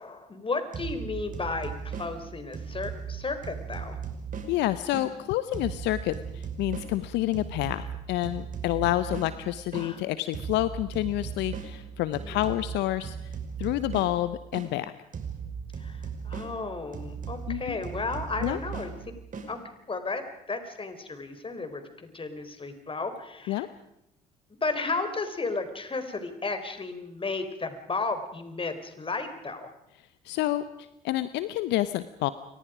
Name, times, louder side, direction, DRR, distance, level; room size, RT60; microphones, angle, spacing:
voice 1, 0.0-4.0 9.7-10.0 12.2-12.4 15.8-18.9 19.5-19.6 19.9-20.2 20.5-23.7 24.6-29.7, left 3 dB, 25° left, 8 dB, 4.1 m, -33 dB
sound 1, 0.7-5.1 5.5-9.9 10.3-14.7 15.1-19.5, right 6 dB, 45° right, 4.9 m, -38 dB
voice 2, 4.5-13.2 13.6-14.9 17.5-17.8 18.4-18.6 23.5-23.7 30.2-32.3, left 15 dB, 65° left, 14 dB, 0.9 m, -28 dB
29.5 x 24.5 x 5.0 m, 0.84 s
hypercardioid pair, 55°, 19 cm